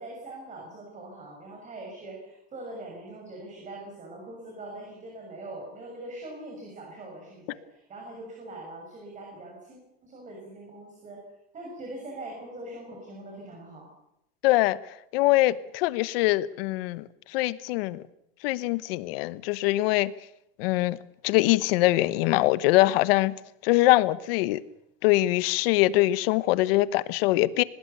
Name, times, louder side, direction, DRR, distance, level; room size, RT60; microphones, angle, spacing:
voice 1, 0.0-11.2 11.5-13.9, right 2 dB, 25° right, 6.5 m, -42 dB
voice 2, 14.4-14.8 15.1-18.0 18.4-20.1 20.6-23.3 23.6-24.6 25.0-27.6, left 18 dB, 65° left, 1.1 m, -23 dB
25.0 x 19.0 x 6.9 m
supercardioid pair, 145°, 31 cm